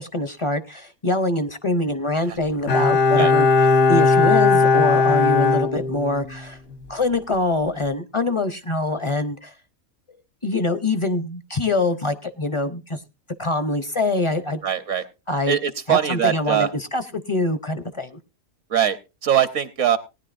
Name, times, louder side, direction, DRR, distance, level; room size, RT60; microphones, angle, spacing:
voice 1, 0.0-3.5 3.9-6.6 6.9-9.5 10.4-13.0 13.4-14.6 15.3-15.6 15.9-17.0 17.3-18.2, left 2 dB, 35° left, 10 dB, 0.5 m, -24 dB
Bowed string instrument, 2.7-6.4 6.7-6.8, left 4 dB, 80° left, 1.7 m, -17 dB
voice 2, 14.6-15.0 15.5-16.7 18.7-20.0, right 10 dB, 65° right, 11 dB, 1.1 m, -22 dB
18.5 x 10.5 x 2.5 m, 0.28 s
omnidirectional pair, 1.5 m